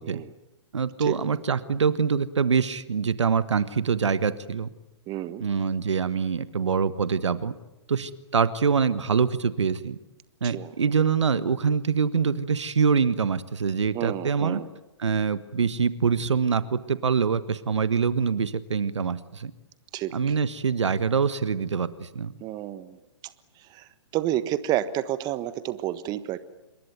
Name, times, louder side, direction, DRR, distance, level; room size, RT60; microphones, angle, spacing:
voice 1, 0.7-4.7 5.4-7.5 7.9-10.0 10.4-14.6 15.0-19.5 20.1-22.3, right 6 dB, 80° right, 14 dB, 1.5 m, -24 dB
voice 2, 5.1-5.4 10.5-10.7 13.9-14.6 19.9-20.1 22.4-22.9 24.1-26.4, right 13 dB, 25° right, 14 dB, 1.3 m, -29 dB
27.0 x 22.0 x 9.3 m, 0.95 s
hypercardioid pair, 125°, 15 cm